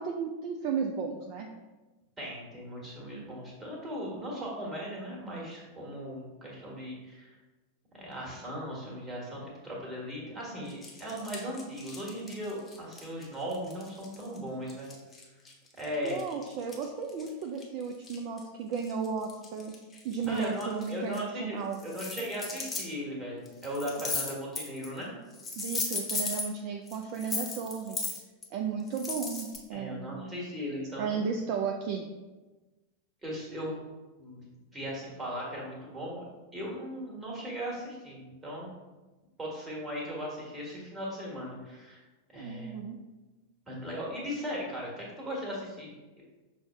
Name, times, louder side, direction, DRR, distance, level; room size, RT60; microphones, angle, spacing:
voice 1, 0.0-1.5 16.0-19.7 20.0-21.8 25.6-28.1 28.5-30.4 31.0-32.1 42.4-43.0, right 6 dB, 45° right, 2 dB, 0.3 m, -34 dB
voice 2, 2.2-7.4 7.9-15.0 15.8-16.2 20.2-25.1 29.7-31.2 33.2-33.8 34.2-36.2 36.5-38.7 39.4-42.0 42.3-42.7 43.7-46.2, equal, 15° right, -4 dB, 1.4 m, -38 dB
sound 1, 10.7-14.4 14.7-18.4 18.7-21.2 21.7-22.8 23.5-25.0 25.3-26.5 26.9-28.4 28.9-29.6, left 3 dB, 15° left, 0.8 m, -37 dB
6.2 x 2.1 x 3.3 m, 1.2 s
figure-of-eight pair, 90°, 0 cm